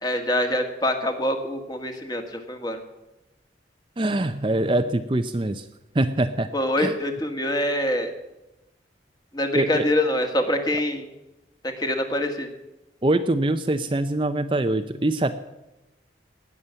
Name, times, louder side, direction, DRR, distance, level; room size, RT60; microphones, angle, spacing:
voice 1, 0.0-2.8 6.5-8.1 9.3-11.0 11.6-12.5, left 1 dB, 20° left, 5 dB, 1.7 m, -25 dB
voice 2, 4.0-5.6 5.9-6.5 6.8-7.0 9.5-9.8 13.0-15.3, right 1 dB, 25° right, 8 dB, 0.6 m, -23 dB
18.5 x 7.2 x 9.5 m, 0.97 s
head